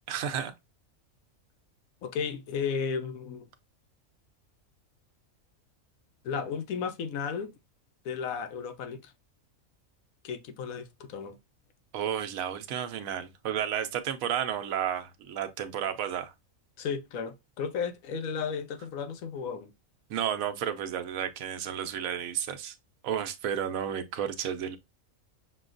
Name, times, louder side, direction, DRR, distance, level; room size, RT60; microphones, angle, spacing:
voice 1, 0.1-0.5 11.9-16.3 20.1-22.7 23.0-24.8, right 9 dB, 80° right, 1.0 m, -32 dB
voice 2, 2.0-3.5 6.2-7.5 8.0-9.1 10.2-11.4 16.8-19.7, left 6 dB, 85° left, 1.1 m, -34 dB
6.2 x 2.3 x 2.4 m
omnidirectional pair, 1.4 m